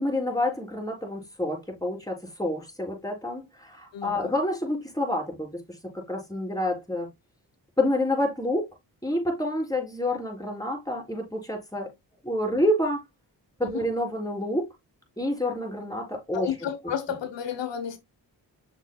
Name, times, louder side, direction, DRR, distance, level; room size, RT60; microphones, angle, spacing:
voice 1, 0.0-7.1 7.8-8.7 9.0-11.9 12.2-13.0 13.6-14.7 15.2-16.5, left 1 dB, 10° left, 3.8 m, -28 dB
voice 2, 3.9-4.4 13.6-13.9 16.3-18.0, left 8 dB, 90° left, 1.0 m, -32 dB
6.9 x 6.6 x 2.3 m
cardioid pair, 45°, 42 cm